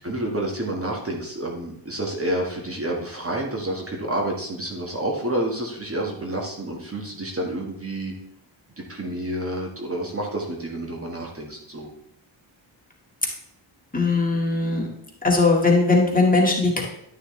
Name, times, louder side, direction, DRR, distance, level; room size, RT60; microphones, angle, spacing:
voice 1, 0.0-8.1 8.8-11.9, right 1 dB, 30° right, 0 dB, 1.8 m, -29 dB
voice 2, 13.9-14.9 15.2-16.8, left 3 dB, 15° left, -2 dB, 2.1 m, -19 dB
11.0 x 6.4 x 3.3 m, 0.74 s
cardioid pair, 75°, 47 cm